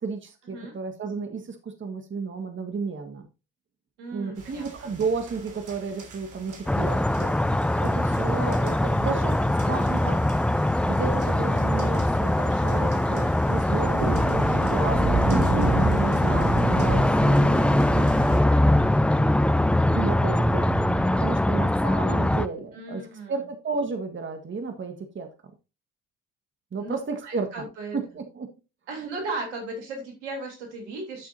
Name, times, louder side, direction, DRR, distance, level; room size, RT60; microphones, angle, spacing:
voice 1, 0.0-3.3 4.1-7.4 7.8-9.4 9.7-10.2 10.8-17.9 19.9-20.6 21.2-25.3 26.7-27.6 27.9-28.5, right 4 dB, 35° right, 6 dB, 1.7 m, -33 dB
voice 2, 4.0-4.9 20.8-21.1 22.7-23.4 26.8-28.0 28.9-31.3, right 2 dB, 85° right, 1 dB, 3.4 m, -36 dB
sound 1, 4.4-18.4, right 2 dB, 60° right, 3.2 m, -32 dB
sound 2, 6.7-22.5, left 1 dB, 5° left, 0.5 m, -22 dB
sound 3, 17.7-21.2, left 2 dB, 75° left, 2.0 m, -43 dB
12.5 x 6.7 x 2.7 m, 0.30 s
hypercardioid pair, 50°, 35 cm